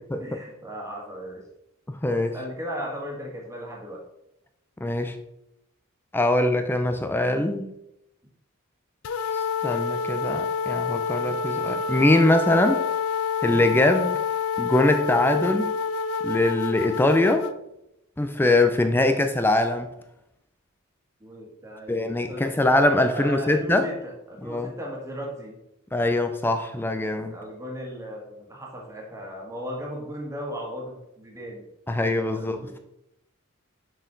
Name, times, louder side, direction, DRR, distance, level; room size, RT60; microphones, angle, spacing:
voice 1, 0.0-1.5 2.1-4.0 21.2-22.8 23.1-25.6 27.0-31.7 32.0-32.8, equal, 15° right, -2 dB, 1.6 m, -37 dB
voice 2, 1.9-2.3 4.8-5.2 6.1-7.7 9.3-12.8 13.4-14.2 14.6-15.7 16.2-17.5 18.2-19.9 21.9-23.9 24.4-24.7 25.9-27.3 31.9-32.6, left 2 dB, 10° left, 7 dB, 0.4 m, -22 dB
sound 1, 9.0-17.5, left 5 dB, 75° left, 0.4 m, -28 dB
6.4 x 6.3 x 3.9 m, 0.83 s
head